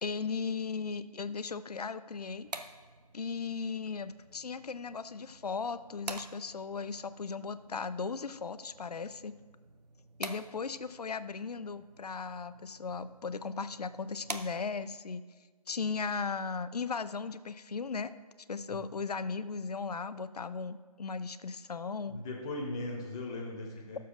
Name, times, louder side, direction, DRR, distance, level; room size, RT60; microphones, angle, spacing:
voice 1, 0.0-2.5 3.1-9.3 10.2-15.2 15.7-18.1 18.5-22.2, left 5 dB, 75° left, 14 dB, 0.5 m, -37 dB
sound 1, 2.1-15.0, right 3 dB, 90° right, 0.8 m, -48 dB
voice 2, 22.1-24.0, left 2 dB, 5° left, -3 dB, 0.3 m, -38 dB
17.5 x 6.9 x 2.5 m, 1.5 s
figure-of-eight pair, 150°, 20 cm